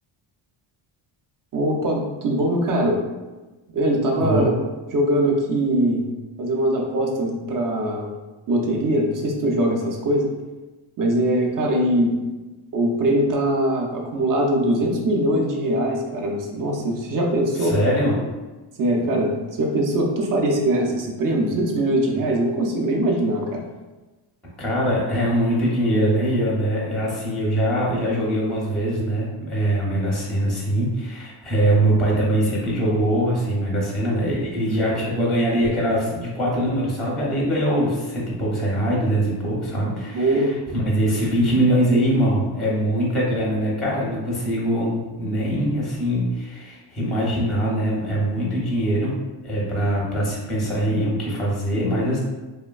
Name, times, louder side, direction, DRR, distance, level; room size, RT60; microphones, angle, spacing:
voice 1, 1.5-3.0 3.7-4.5 4.9-6.1 6.4-8.1 8.5-10.3 11.0-12.2 12.7-18.1 18.8-19.3 19.6-23.6 40.1-40.5, right 1 dB, 40° right, 0 dB, 0.5 m, -22 dB
voice 2, 17.6-18.1 24.6-40.4 40.7-49.2 49.4-52.2, right 1 dB, ahead, -5 dB, 0.6 m, -22 dB
3.1 x 2.1 x 2.3 m, 1.2 s
cardioid pair, 130°, 49 cm